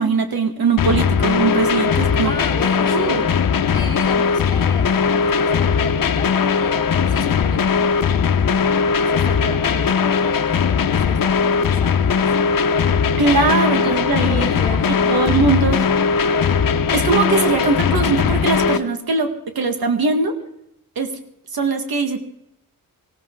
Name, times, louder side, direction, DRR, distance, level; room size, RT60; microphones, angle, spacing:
voice 1, 0.0-2.3 2.9-3.3 13.2-14.5 15.1-15.8 16.9-20.3 21.0-21.1 21.5-22.2, right 4 dB, 90° right, 7 dB, 1.8 m, -20 dB
sound 1, 0.8-18.8, left 6 dB, 70° left, 0.9 m, -19 dB
voice 2, 2.2-3.3 3.7-8.6 9.1-12.6 13.8-13.9 14.3-15.4, left 1 dB, 10° left, 2 dB, 3.8 m, -34 dB
19.0 x 17.0 x 3.8 m, 0.77 s
wide cardioid pair, 125°, 35 cm